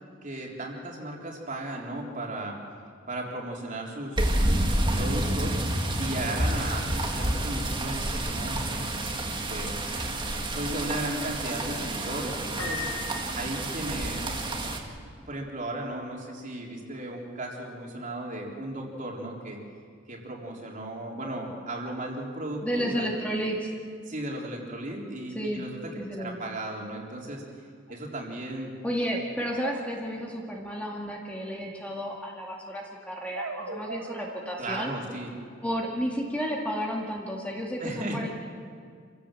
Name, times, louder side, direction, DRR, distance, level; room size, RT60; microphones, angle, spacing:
voice 1, 0.2-2.6 3.1-9.8 10.5-12.8 13.3-14.4 15.3-19.6 20.1-23.0 24.1-25.9 26.2-27.4 27.9-28.7 34.6-35.3 37.8-38.2, right 1 dB, 40° right, -1 dB, 3.7 m, -35 dB
sound 1, 4.2-14.8, right 1 dB, 25° right, 2.0 m, -29 dB
Piano, 12.6-14.4, left 4 dB, 90° left, 4.9 m, -38 dB
voice 2, 22.6-23.7 25.4-25.6 25.9-26.4 28.8-34.9 35.6-38.3, equal, 5° left, -2 dB, 2.1 m, -32 dB
sound 2, 27.9-28.0 29.6-30.6 33.3-35.0, right 3 dB, 80° right, 1.6 m, -39 dB
27.0 x 16.5 x 7.6 m, 2.1 s
head